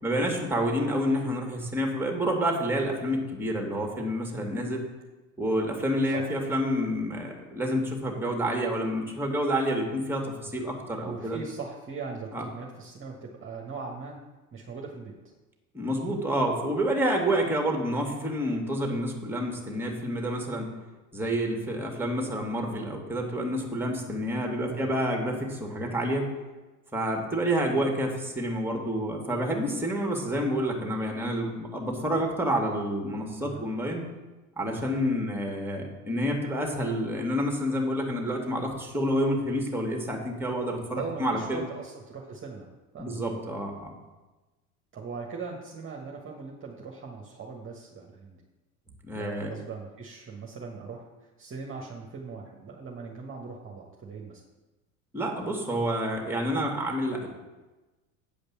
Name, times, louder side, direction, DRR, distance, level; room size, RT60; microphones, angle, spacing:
voice 1, 0.0-4.8 5.4-11.4 12.3-12.4 15.7-20.7 21.1-26.3 26.9-34.0 34.6-41.6 43.0-43.9 49.0-49.5 55.1-57.3, equal, 5° right, 1 dB, 2.3 m, -28 dB
voice 2, 11.0-14.2 14.5-15.1 24.7-24.9 33.4-33.6 35.2-35.4 40.9-42.7 42.9-43.4 44.9-48.4 49.1-54.4, right 4 dB, 25° right, -1 dB, 1.5 m, -40 dB
8.6 x 5.1 x 7.2 m, 1.1 s
hypercardioid pair, 75°, 45 cm